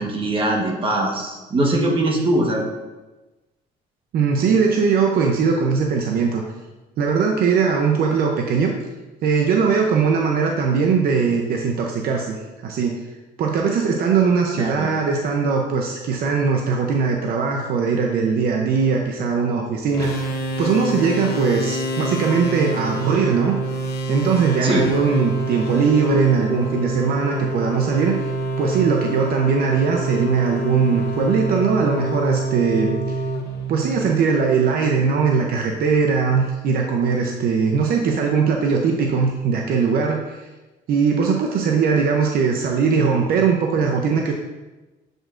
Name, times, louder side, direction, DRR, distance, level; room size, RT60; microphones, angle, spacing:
voice 1, 0.0-2.7 14.6-14.9 24.6-24.9, right 1 dB, 30° right, 0 dB, 1.2 m, -21 dB
voice 2, 4.1-6.4 7.0-8.7 9.2-13.0 13.4-23.5 24.1-28.1 28.6-33.2 33.7-40.4 40.9-44.3, right 5 dB, 60° right, 1 dB, 0.6 m, -20 dB
sound 1, 19.9-34.5, right 2 dB, 65° left, 1.0 m, -26 dB
7.4 x 5.2 x 2.5 m, 1.1 s
cardioid pair, 110°, 17 cm